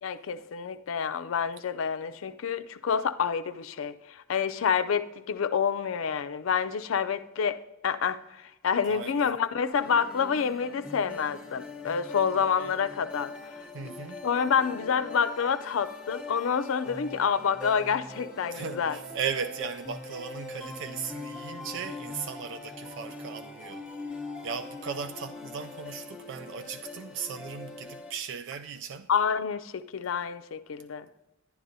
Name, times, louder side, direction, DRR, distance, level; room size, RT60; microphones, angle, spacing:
voice 1, 0.0-7.6 7.8-13.3 14.2-19.0 29.1-31.1, left 6 dB, 75° left, 0.4 m, -28 dB
voice 2, 8.9-9.3 13.7-14.2 18.5-23.8 24.4-29.1, right 6 dB, 65° right, 0.3 m, -37 dB
sound 1, 9.7-28.1, left 2 dB, 5° right, 0.9 m, -42 dB
10.5 x 10.0 x 2.7 m
head